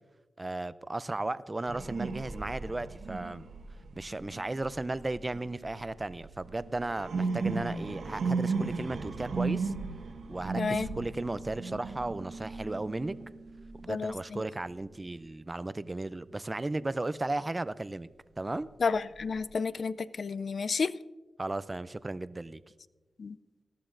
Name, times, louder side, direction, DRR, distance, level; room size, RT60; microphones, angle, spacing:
voice 1, 0.4-3.5 4.0-9.7 10.3-13.1 13.8-18.1 18.4-18.7 21.4-22.6, right 2 dB, 20° right, 16 dB, 0.4 m, -35 dB
sound 1, 1.7-5.8 6.2-14.2 18.9-19.4, right 4 dB, 85° right, 1.5 m, -35 dB
voice 2, 10.6-10.9 13.9-14.4 18.8-20.9 23.2-23.4, left 5 dB, 55° left, 17 dB, 0.3 m, -31 dB
19.0 x 13.5 x 2.6 m, 1.3 s
wide cardioid pair, 110°, 0 cm